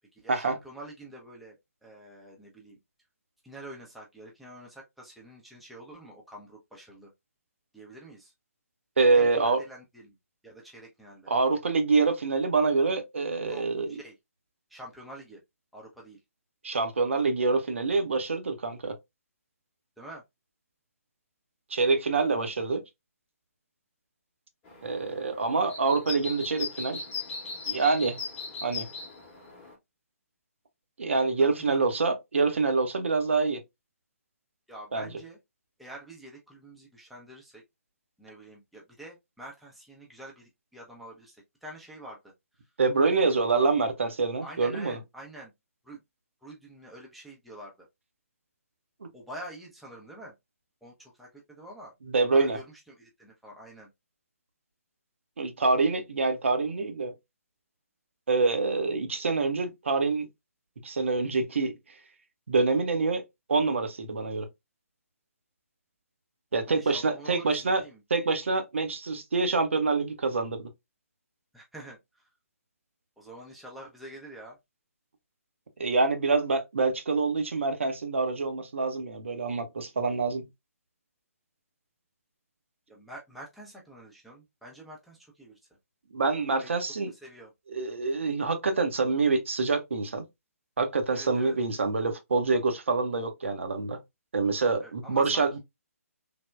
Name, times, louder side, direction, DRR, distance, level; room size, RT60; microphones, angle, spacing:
voice 1, 0.1-1.6 1.8-2.8 3.4-7.1 7.7-8.3 9.1-10.2 10.4-11.3 13.5-14.1 14.7-15.4 15.7-16.2 20.0-20.2 31.4-31.9 34.7-35.4 35.8-37.6 38.2-42.3 43.1-43.7 44.4-45.5 45.8-46.0 46.4-47.9 49.1-50.3 50.8-51.9 52.3-53.9 66.6-68.0 71.5-72.3 73.2-74.6 82.9-85.6 86.6-86.7 87.1-87.5 91.1-91.6 94.8-95.6, right 1 dB, ahead, 0.4 m, -46 dB
voice 2, 9.0-9.6 11.3-14.0 16.6-19.0 21.7-22.8 24.8-27.0 27.7-28.2 28.6-28.9 31.0-33.6 34.9-35.1 42.8-45.0 49.0-49.1 52.1-52.6 55.4-57.1 58.3-60.3 60.8-61.7 62.5-63.2 63.5-64.5 66.5-67.8 68.1-70.7 75.8-80.5 86.1-87.1 87.7-90.2 90.8-94.0 94.3-95.6, right 4 dB, 55° right, 0.5 m, -26 dB
sound 1, 24.7-29.7, left 5 dB, 15° left, 0.8 m, -38 dB
3.3 x 2.1 x 2.2 m
figure-of-eight pair, 135°, 8 cm